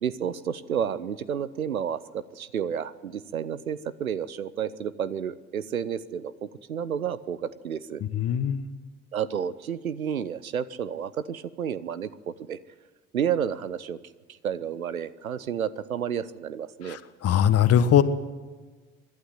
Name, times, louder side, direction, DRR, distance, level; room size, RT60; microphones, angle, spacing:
voice 1, 0.0-8.0 9.1-12.6 13.1-14.0 14.4-17.0, right 8 dB, 85° right, 16 dB, 0.7 m, -31 dB
voice 2, 8.1-8.6 16.9-18.0, left 9 dB, 35° left, 12 dB, 1.3 m, -21 dB
24.5 x 12.0 x 9.1 m, 1.4 s
figure-of-eight pair, 70°, 41 cm